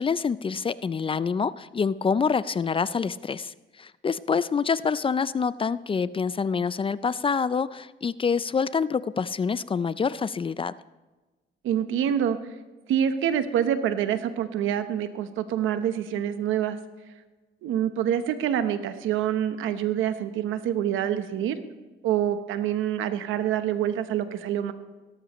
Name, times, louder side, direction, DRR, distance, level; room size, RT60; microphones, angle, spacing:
voice 1, 0.0-10.7, left 5 dB, 25° left, 17 dB, 0.4 m, -26 dB
voice 2, 11.6-12.4 12.9-16.8 17.6-21.6 22.0-24.7, right 10 dB, 85° right, 10 dB, 1.0 m, -26 dB
17.5 x 13.5 x 3.1 m, 1.2 s
cardioid pair, 90°, 20 cm